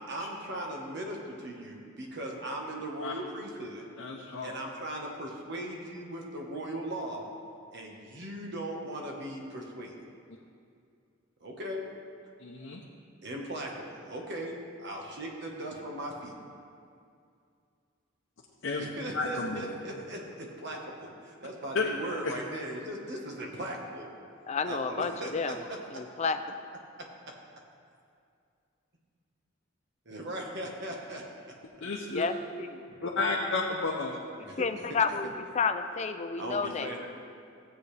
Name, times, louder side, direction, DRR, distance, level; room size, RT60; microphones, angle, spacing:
voice 1, 0.0-3.8 4.4-7.3 7.7-9.9 11.4-11.8 13.2-14.5 14.8-16.3 18.7-24.1 24.6-25.5 25.9-26.0 30.1-31.5 34.4-34.7 36.4-37.1, right 1 dB, 60° right, 0 dB, 1.3 m, -38 dB
voice 2, 4.0-4.5 12.4-12.8 18.6-18.9 19.1-19.7 21.7-21.9 22.2-22.3 31.8-32.2 33.0-34.2, left 3 dB, 65° left, -2 dB, 0.7 m, -31 dB
voice 3, 24.5-25.6 25.9-26.4 32.1-32.8 34.4-37.0, left 5 dB, 35° left, 8 dB, 0.5 m, -31 dB
14.5 x 8.1 x 3.3 m, 2.4 s
head